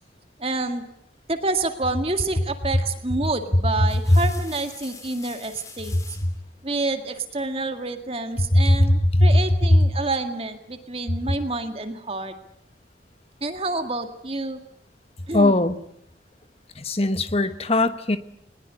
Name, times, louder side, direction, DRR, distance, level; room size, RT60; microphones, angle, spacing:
voice 1, 0.4-0.8 1.3-6.0 6.6-12.3 13.4-14.6 15.3-15.5, right 2 dB, 30° right, 7 dB, 2.0 m, -28 dB
sound 1, 2.7-3.0 3.6-6.4 7.8-8.5, left 4 dB, 20° left, 2.7 m, -45 dB
voice 2, 8.4-9.4 9.7-9.9 15.3-15.7 16.8-18.2, left 1 dB, 35° left, 11 dB, 1.3 m, -19 dB
21.0 x 20.5 x 9.6 m, 0.76 s
head